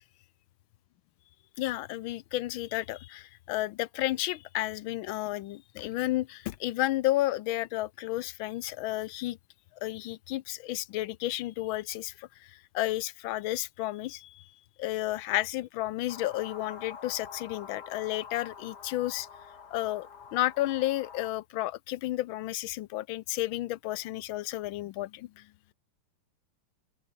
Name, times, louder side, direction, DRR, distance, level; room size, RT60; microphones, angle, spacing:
voice 1, 1.6-9.4 9.8-14.5 14.8-19.3 19.7-25.5, left 16 dB, 75° left, 1.4 m, -32 dB
sound 1, 16.1-21.3, left 6 dB, 50° left, 2.5 m, -47 dB
open air
omnidirectional pair, 2.4 m